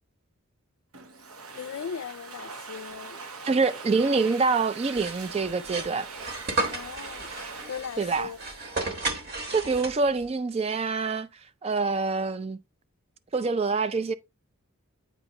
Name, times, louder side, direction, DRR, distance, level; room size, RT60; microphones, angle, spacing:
Domestic sounds home sounds, 0.9-9.4, right 4 dB, 85° right, 1.0 m, -43 dB
voice 1, 1.5-3.2 6.7-7.3 7.7-8.4, left 7 dB, 70° left, 0.4 m, -38 dB
voice 2, 3.4-6.1 8.0-8.3 9.5-11.3 11.6-12.6 13.3-14.1, right 4 dB, 30° right, 0.3 m, -26 dB
sound 1, 4.9-10.3, right 2 dB, 50° right, 1.2 m, -33 dB
8.0 x 5.3 x 2.9 m
head